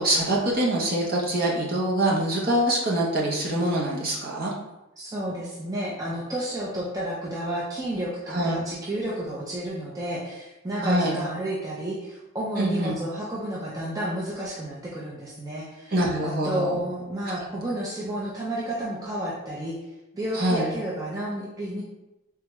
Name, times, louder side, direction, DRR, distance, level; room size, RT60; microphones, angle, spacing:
voice 1, 0.0-4.5 8.3-8.6 10.8-11.2 12.6-12.9 15.9-16.8 17.4-17.5 20.3-20.7, right 1 dB, 45° right, -3 dB, 0.7 m, -24 dB
voice 2, 5.0-15.9 16.2-19.8 20.1-21.8, right 1 dB, 15° right, -6 dB, 0.4 m, -31 dB
3.4 x 2.2 x 3.0 m, 0.97 s
head